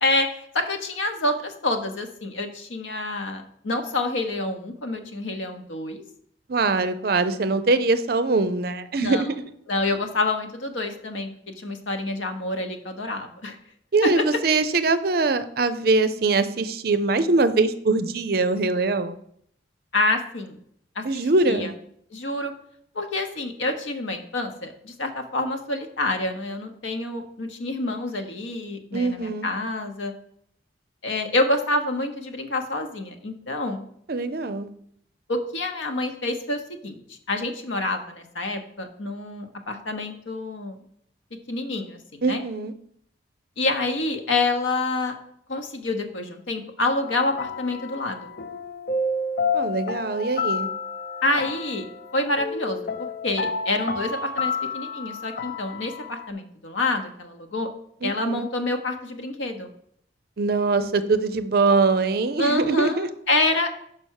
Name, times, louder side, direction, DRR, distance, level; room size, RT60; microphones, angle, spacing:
voice 1, 0.0-6.0 9.0-9.2 9.7-13.6 14.0-14.1 19.9-20.6 20.9-21.0 21.5-21.7 22.1-22.5 22.9-30.1 31.0-33.8 35.3-40.8 41.5-42.4 43.6-45.1 45.5-48.3 51.2-51.8 52.1-52.9 53.2-57.7 58.0-59.7 62.4-63.7, left 2 dB, 85° left, 6 dB, 1.1 m, -27 dB
voice 2, 6.5-9.3 13.9-19.2 21.0-21.7 28.9-29.5 34.1-34.7 42.2-42.7 49.5-50.7 58.0-58.5 60.4-63.1, right 3 dB, 50° right, 11 dB, 0.5 m, -22 dB
sound 1, 47.0-56.3, left 4 dB, 50° left, 0.5 m, -30 dB
5.7 x 5.2 x 6.4 m, 0.68 s
head